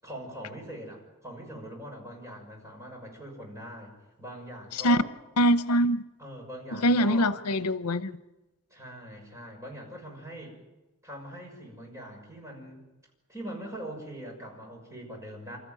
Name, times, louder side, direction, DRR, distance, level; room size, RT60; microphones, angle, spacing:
voice 1, 0.0-3.9 4.2-5.1 6.2-7.3 8.7-10.5 11.0-12.8 13.3-15.6, equal, 15° right, 6.5 m, -42 dB
voice 2, 5.4-6.0 6.7-8.2, equal, 90° left, 0.8 m, -23 dB
28.5 x 13.5 x 9.2 m
head